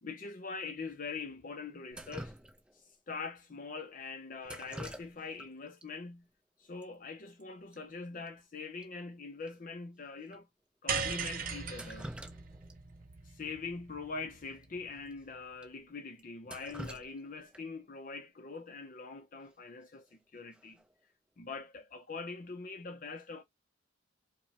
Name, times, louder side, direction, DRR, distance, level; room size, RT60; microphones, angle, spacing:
voice 1, 0.0-2.3 2.7-6.3 6.6-10.5 10.8-12.1 13.2-20.8 21.4-23.4, left 4 dB, 40° left, 0.5 m, -43 dB
Drip, 1.9-2.9 4.4-5.5 5.8-5.9 6.8-6.9 7.2-7.4 7.7-7.8 8.3-8.4 8.8-8.9 9.5-9.6 10.3-10.4 11.5-12.8 13.1-13.2 14.5-14.6 15.1-15.2 15.6-15.7 16.2-17.8 19.8-20.1 20.5-20.9, right 1 dB, 5° right, 0.5 m, -47 dB
sound 1, 10.9-15.3, right 5 dB, 40° right, 0.6 m, -39 dB
4.9 x 2.1 x 2.8 m
head